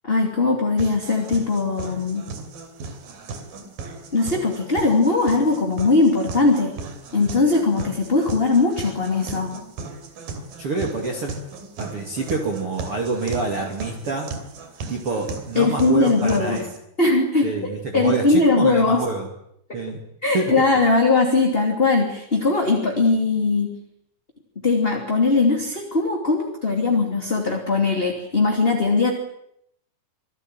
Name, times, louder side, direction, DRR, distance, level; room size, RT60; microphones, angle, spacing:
voice 1, 0.0-2.3 4.1-6.8 7.1-9.5 15.5-16.6 17.0-19.0 19.7-19.8 20.2-23.8 24.6-29.1, left 3 dB, 15° left, 1 dB, 2.3 m, -20 dB
sound 1, 0.8-16.8, right 3 dB, 65° right, 4.4 m, -36 dB
voice 2, 10.6-11.3 11.8-14.3 14.9-16.7 17.4-19.3 19.7-20.0 20.3-20.5, right 3 dB, 40° right, 1 dB, 3.0 m, -27 dB
26.0 x 16.5 x 9.1 m, 0.74 s
omnidirectional pair, 4.6 m